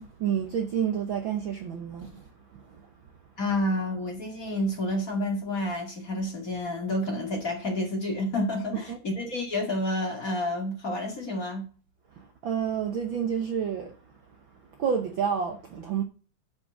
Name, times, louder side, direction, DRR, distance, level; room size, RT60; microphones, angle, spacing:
voice 1, 0.0-3.1 8.9-9.0 12.1-16.0, right 8 dB, 80° right, 1.1 m, -30 dB
voice 2, 3.4-11.7, left 1 dB, 30° left, 2.3 m, -29 dB
9.4 x 5.5 x 7.3 m
omnidirectional pair, 3.8 m